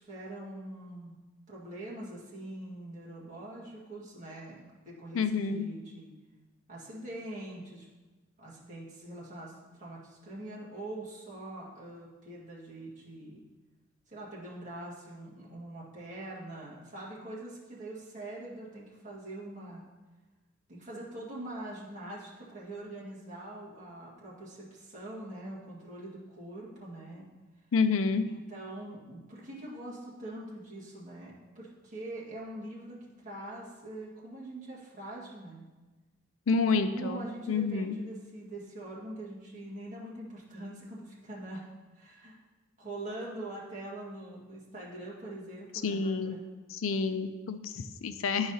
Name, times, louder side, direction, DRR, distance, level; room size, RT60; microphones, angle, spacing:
voice 1, 0.1-1.1 1.5-6.1 6.7-7.9 8.4-13.4 14.1-19.8 20.7-27.2 28.2-35.7 36.7-41.7 41.9-42.3 42.8-46.4, right 1 dB, 40° right, -6 dB, 1.7 m, -43 dB
voice 2, 5.1-5.7 27.7-28.3 36.5-38.0 45.8-46.4 46.8-48.5, left 4 dB, 90° left, 10 dB, 0.5 m, -29 dB
10.5 x 4.8 x 2.8 m, 1.2 s
head